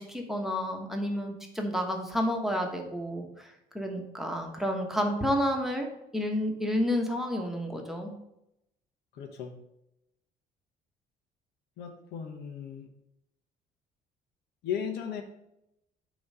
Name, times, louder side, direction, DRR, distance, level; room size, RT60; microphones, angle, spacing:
voice 1, 0.0-8.1, equal, ahead, 2 dB, 1.2 m, -30 dB
voice 2, 9.1-9.6 11.8-12.9 14.6-15.2, left 8 dB, 80° left, 4 dB, 1.1 m, -36 dB
8.6 x 3.1 x 5.5 m, 0.84 s
cardioid pair, 110°, 17 cm